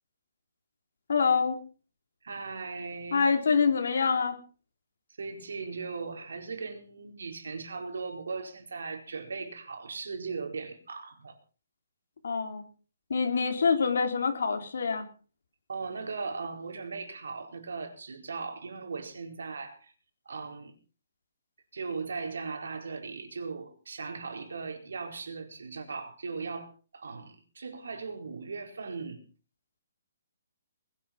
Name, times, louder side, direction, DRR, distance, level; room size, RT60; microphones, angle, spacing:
voice 1, 1.1-1.6 3.1-4.4 12.2-12.6 13.1-15.1, left 5 dB, 65° left, 6 dB, 3.8 m, -25 dB
voice 2, 2.2-3.3 5.2-11.4 15.7-19.9 20.3-20.7 21.7-29.2, right 4 dB, 80° right, 5 dB, 4.5 m, -38 dB
20.5 x 10.5 x 5.9 m, 0.38 s
hypercardioid pair, 180°, 0 cm